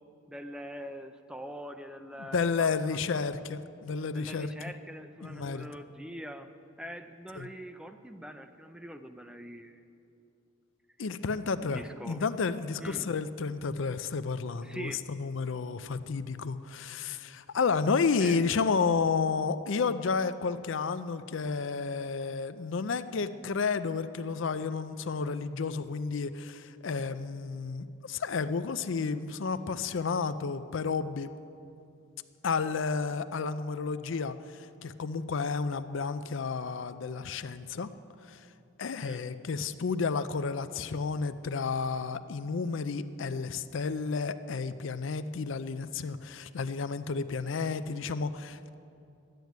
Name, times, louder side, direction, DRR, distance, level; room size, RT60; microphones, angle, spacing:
voice 1, 0.3-3.2 4.1-6.5 6.8-9.8 11.6-12.3 12.8-13.1 14.6-15.0 18.2-18.4 39.0-39.2, equal, 5° right, 8 dB, 0.4 m, -43 dB
voice 2, 2.2-4.5 5.2-5.7 7.4-7.5 11.0-31.3 32.4-34.4 34.8-37.9 38.3-38.4 38.8-48.7, left 5 dB, 65° left, 12 dB, 0.5 m, -31 dB
12.0 x 9.2 x 9.3 m, 2.6 s
head